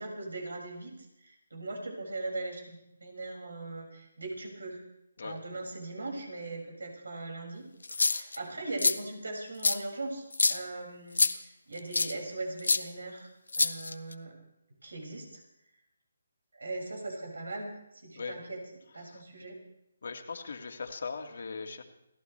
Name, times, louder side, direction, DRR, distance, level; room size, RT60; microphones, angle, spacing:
voice 1, 0.0-2.7 3.0-4.8 5.2-7.7 8.0-13.3 13.6-14.3 14.8-15.4 16.5-18.6 18.9-19.6, right 2 dB, 90° right, 1 dB, 6.2 m, -39 dB
sound 1, 7.8-8.4 8.8-8.9 9.6-9.8 10.3-10.6 11.2-11.3 11.9-12.1 12.6-12.8 13.5-14.1, left 3 dB, 90° left, 1.1 m, -25 dB
voice 2, 20.0-21.8, left 4 dB, 65° left, 4 dB, 2.2 m, -40 dB
29.5 x 14.5 x 3.4 m, 0.83 s
hypercardioid pair, 160°, 0 cm